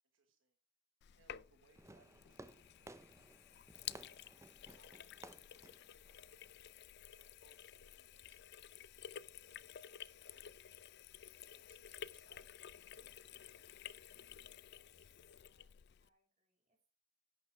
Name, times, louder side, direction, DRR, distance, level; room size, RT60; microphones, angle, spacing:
voice 1, 0.1-0.6 1.1-3.8 4.2-4.3 4.6-5.8 6.2-6.4 7.1-10.6 11.3-12.7, right 3 dB, 70° right, 5 dB, 1.4 m, -74 dB
Sink (filling or washing), 1.0-16.1, left 10 dB, 55° left, 0.4 m, -53 dB
Fireworks, 1.7-6.8, right 2 dB, 15° right, 0.6 m, -58 dB
voice 2, 14.6-15.0 15.4-15.7 16.0-16.9, right 1 dB, 35° right, 2 dB, 3.8 m, -83 dB
11.0 x 9.3 x 3.3 m, 0.35 s
head